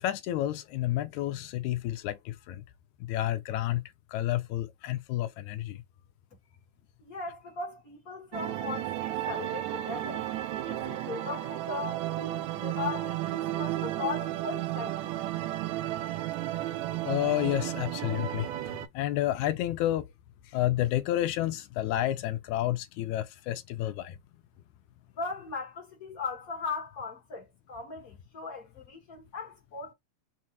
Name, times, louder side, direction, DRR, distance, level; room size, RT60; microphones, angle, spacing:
voice 1, 0.0-2.6 3.0-3.8 4.1-5.8 17.0-20.1 20.5-24.2, left 13 dB, 85° left, 2.0 m, -30 dB
voice 2, 7.0-10.3 10.6-15.1 25.2-29.9, left 4 dB, 55° left, 0.9 m, -38 dB
sound 1, 8.3-18.9, right 14 dB, 80° right, 1.9 m, -33 dB
5.8 x 2.3 x 2.8 m
omnidirectional pair, 3.4 m